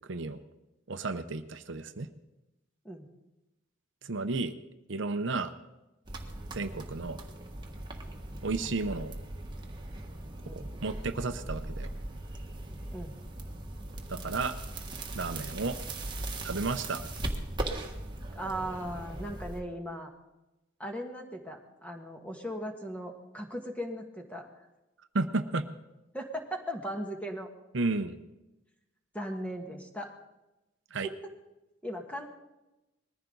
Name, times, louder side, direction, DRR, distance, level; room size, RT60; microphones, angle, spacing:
voice 1, 0.1-0.4 0.9-2.1 4.0-4.5 4.9-5.5 6.5-7.2 8.4-9.2 10.5-11.9 14.1-14.6 15.1-15.8 16.4-17.0 25.1-25.7 27.7-28.2 30.9-31.1, right 3 dB, 65° right, 9 dB, 0.8 m, -32 dB
sound 1, 6.1-19.6, right 1 dB, 25° right, 1.6 m, -39 dB
voice 2, 18.3-20.1 20.8-24.5 26.1-27.5 29.1-30.1 31.0-31.1 31.8-32.3, equal, 5° left, 3 dB, 1.8 m, -38 dB
21.0 x 14.5 x 4.0 m, 0.98 s
head